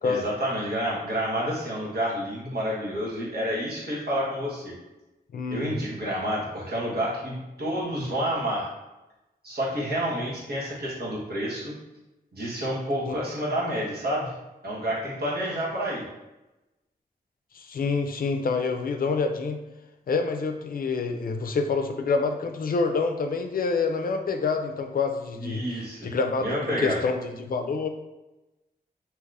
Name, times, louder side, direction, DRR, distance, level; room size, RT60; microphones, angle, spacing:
voice 1, 0.0-4.7 5.5-8.7 9.4-11.7 12.3-14.3 14.6-16.0 25.4-26.1 26.4-27.0, equal, 75° right, -6 dB, 1.1 m, -29 dB
voice 2, 5.3-5.7 13.1-13.2 17.5-19.6 20.1-26.5 26.8-27.9, left 4 dB, 60° left, 6 dB, 0.4 m, -27 dB
2.9 x 2.4 x 3.2 m, 1.0 s
wide cardioid pair, 120°, 17 cm